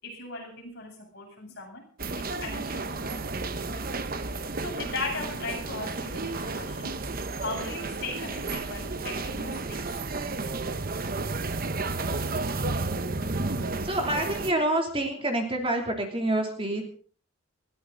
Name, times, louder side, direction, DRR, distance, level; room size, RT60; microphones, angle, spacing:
voice 1, 0.0-1.9 2.2-3.9 4.2-7.0 7.3-9.9, left 3 dB, 50° left, 0 dB, 7.9 m, -38 dB
sound 1, 2.0-14.5, right 3 dB, 45° right, 1.0 m, -32 dB
voice 2, 13.8-16.8, right 1 dB, 25° right, 3 dB, 3.0 m, -27 dB
21.0 x 16.5 x 4.0 m, 0.43 s
head